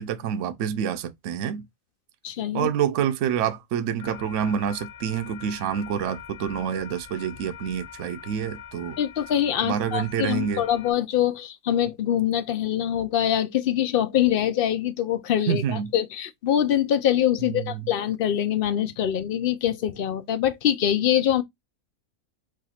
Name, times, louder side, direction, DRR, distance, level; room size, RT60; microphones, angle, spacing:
voice 1, 0.0-1.7 2.5-9.0 9.6-10.6 15.5-15.9 17.4-17.9, right 8 dB, 65° right, 0.9 m, -27 dB
voice 2, 2.2-2.7 9.0-21.4, left 10 dB, 85° left, 0.4 m, -24 dB
sound 1, 4.0-10.9, left 10 dB, 35° left, 0.6 m, -43 dB
5.0 x 2.4 x 4.1 m
omnidirectional pair, 1.5 m